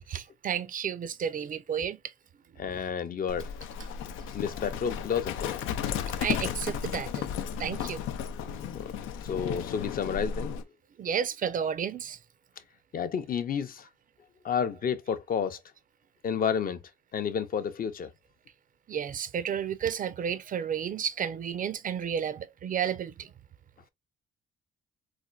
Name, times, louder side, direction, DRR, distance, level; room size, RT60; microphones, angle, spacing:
voice 1, 0.1-2.0 6.2-7.3 7.6-8.0 8.5-8.6 11.0-12.2 18.9-23.3, right 8 dB, 45° right, 0.4 m, -32 dB
voice 2, 2.6-3.5 4.3-5.5 8.5-10.5 12.9-13.9 14.4-15.6 16.2-16.8 17.1-18.1, left 7 dB, 45° left, 0.6 m, -31 dB
Livestock farm animals working animals, 3.3-10.6, left 8 dB, 90° left, 0.4 m, -34 dB
4.1 x 2.5 x 2.3 m
cardioid pair, 90°, 20 cm